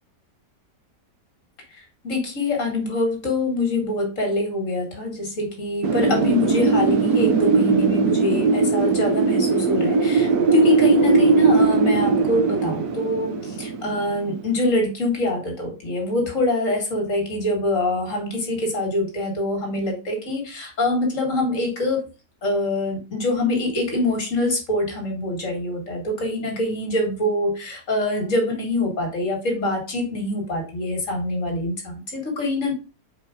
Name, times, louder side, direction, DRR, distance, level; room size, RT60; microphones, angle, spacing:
voice 1, 2.0-22.1 22.4-32.7, left 1 dB, 50° left, 2 dB, 2.1 m, -24 dB
Wind, 5.8-14.5, right 4 dB, 65° right, 1.3 m, -20 dB
4.9 x 4.5 x 4.8 m, 0.33 s
omnidirectional pair, 1.8 m